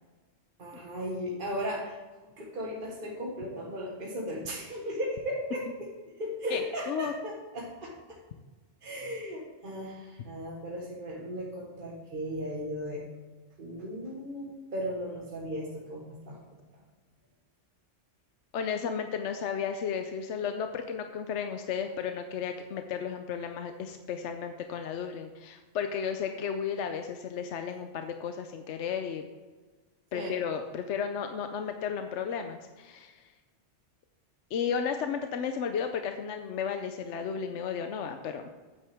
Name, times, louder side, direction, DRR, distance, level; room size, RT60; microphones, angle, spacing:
voice 1, 0.6-2.0 2.4-5.9 6.2-8.2 8.8-13.0 13.6-16.6 30.1-30.4, equal, 50° right, -2 dB, 1.6 m, -36 dB
voice 2, 6.5-7.1 18.5-29.2 30.1-33.3 34.5-38.5, left 7 dB, 80° left, 6 dB, 1.0 m, -33 dB
9.3 x 8.7 x 3.5 m, 1.3 s
omnidirectional pair, 1.2 m